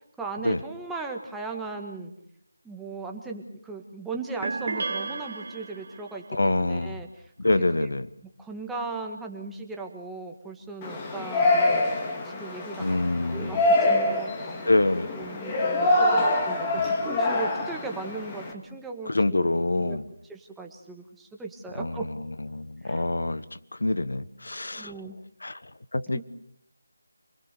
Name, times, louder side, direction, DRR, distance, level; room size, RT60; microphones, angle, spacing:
voice 1, 0.2-2.1 2.6-7.3 7.7-7.9 8.4-11.9 12.2-14.6 15.1-20.0 20.3-22.1 22.8-23.1 24.7-25.1 26.1-26.2, right 3 dB, 5° right, 1 dB, 1.7 m, -38 dB
sound 1, 4.4-6.2, right 3 dB, 50° right, 1.6 m, -33 dB
voice 2, 6.3-7.0 7.4-8.1 12.8-13.6 14.7-15.1 16.8-16.9 19.1-20.0 21.7-22.0 22.5-23.4 23.8-24.9 25.4-25.6 25.9-26.2, left 2 dB, 75° left, 14 dB, 1.3 m, -25 dB
Yell, 10.8-18.5, left 2 dB, 15° left, 2.4 m, -25 dB
27.5 x 21.0 x 6.8 m, 0.71 s
figure-of-eight pair, 165°, 0 cm